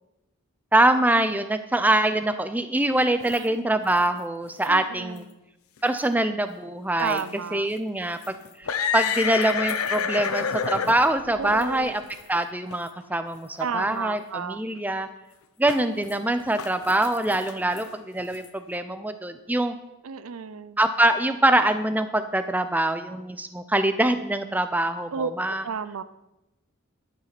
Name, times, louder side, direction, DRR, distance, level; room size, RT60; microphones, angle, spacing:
voice 1, 0.7-5.3 5.8-7.2 7.5-12.0 12.3-13.5 13.7-15.1 15.6-19.7 20.8-25.6, right 1 dB, 10° right, 9 dB, 0.6 m, -24 dB
sound 1, 2.9-3.4 3.8-4.0 4.6-4.7 5.1-5.2 5.8-6.1 7.0-7.2 7.8-7.9 8.2-12.4 12.7-12.8 13.5-13.6 15.7-16.1 16.4-18.5, left 7 dB, 80° left, 0.8 m, -30 dB
voice 2, 3.2-3.6 4.7-5.2 7.0-7.7 11.4-12.0 13.6-14.6 20.0-20.8 25.1-25.3 25.6-26.0, right 6 dB, 75° right, 14 dB, 0.5 m, -32 dB
11.5 x 7.5 x 6.0 m, 0.96 s
head